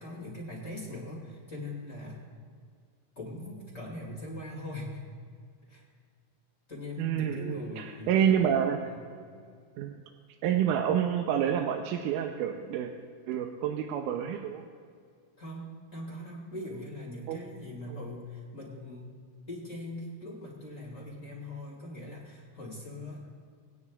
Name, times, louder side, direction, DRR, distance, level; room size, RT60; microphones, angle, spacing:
voice 1, 0.0-2.2 3.2-5.0 5.7-5.8 6.7-8.2 8.9-9.1 15.4-19.1 19.5-23.4, left 1 dB, 25° left, -4 dB, 2.4 m, -41 dB
voice 2, 7.0-8.8 9.8-9.9 10.4-12.9 13.3-14.6 17.3-17.4, right 9 dB, 85° right, 4 dB, 2.1 m, -28 dB
21.0 x 9.8 x 2.4 m, 2.1 s
omnidirectional pair, 3.6 m